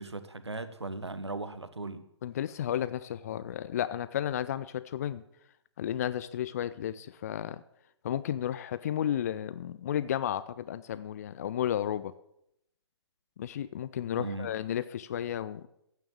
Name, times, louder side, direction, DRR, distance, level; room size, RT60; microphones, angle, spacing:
voice 1, 0.0-2.0 14.2-14.5, right 3 dB, 75° right, 11 dB, 1.3 m, -38 dB
voice 2, 2.2-5.2 5.8-7.6 8.0-12.1 13.4-15.7, left 10 dB, 35° left, 15 dB, 0.5 m, -33 dB
12.5 x 9.2 x 7.4 m, 0.77 s
figure-of-eight pair, 130°, 14 cm